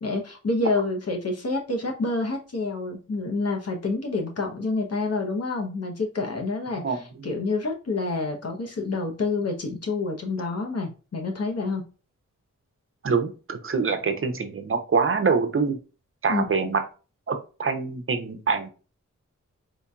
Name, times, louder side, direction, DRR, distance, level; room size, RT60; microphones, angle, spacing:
voice 1, 0.0-11.8 16.3-16.5, left 3 dB, 55° left, 2 dB, 0.8 m, -28 dB
voice 2, 13.0-15.8 16.2-16.8 17.3-18.7, right 5 dB, 45° right, 8 dB, 0.6 m, -25 dB
4.5 x 2.7 x 2.3 m, 0.34 s
cardioid pair, 65°, 31 cm